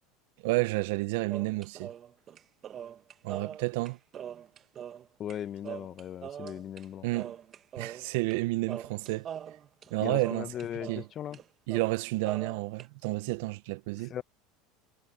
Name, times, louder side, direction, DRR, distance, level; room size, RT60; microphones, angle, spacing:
voice 1, 0.4-1.9 3.2-4.0 7.0-7.4 7.8-9.3 9.9-10.5 10.9-11.0 11.7-14.1, right 22 dB, 75° right, 0.7 m, -30 dB
sound 1, 1.3-5.4 5.6-6.8 7.1-8.4 8.7-11.1 11.3-11.4 11.7-12.9, right 9 dB, 35° right, 1.3 m, -42 dB
voice 2, 5.2-7.1 10.0-11.4 14.0-14.2, left 10 dB, 40° left, 0.7 m, -38 dB
supercardioid pair, 120°, 0 cm